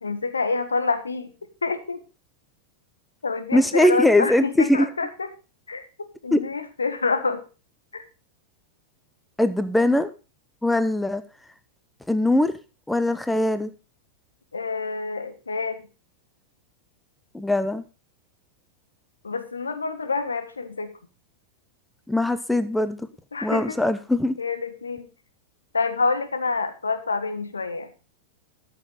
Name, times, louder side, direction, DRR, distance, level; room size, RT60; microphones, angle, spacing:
voice 1, 0.0-1.3 1.6-2.0 3.2-5.3 5.7-7.4 7.9-8.0 14.5-15.9 19.2-20.9 23.3-23.8 24.4-25.1 25.7-27.9, left 4 dB, 75° left, 9 dB, 1.4 m, -27 dB
voice 2, 3.5-4.9 6.3-6.4 9.4-10.1 10.6-11.2 12.1-12.6 12.9-13.7 17.3-17.8 22.1-23.1 23.4-24.4, left 1 dB, 5° left, 12 dB, 0.8 m, -21 dB
13.5 x 6.8 x 4.9 m, 0.32 s
figure-of-eight pair, 90°, 0 cm